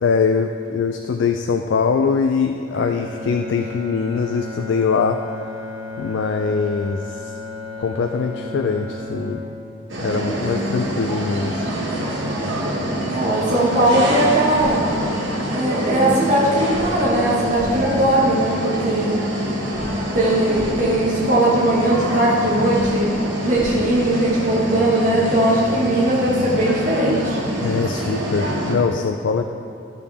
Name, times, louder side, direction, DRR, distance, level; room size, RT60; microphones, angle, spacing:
voice 1, 0.0-5.2 6.0-7.3 7.8-9.4 10.0-11.5 27.6-29.5, left 5 dB, 65° left, 5 dB, 0.4 m, -22 dB
Bowed string instrument, 2.7-11.0, left 2 dB, 85° right, 1.5 m, -34 dB
sound 1, 9.9-28.7, equal, 65° right, 1.7 m, -25 dB
voice 2, 13.1-14.8 15.5-19.2 20.1-23.1 23.4-27.4, right 1 dB, 40° right, -7 dB, 1.3 m, -19 dB
sound 2, 14.5-14.7 16.7-16.8 17.5-17.7 19.7-19.8 20.5-20.7 22.7-22.8 23.5-23.7, right 1 dB, 5° right, 1.6 m, -39 dB
13.5 x 6.8 x 3.5 m, 2.7 s
head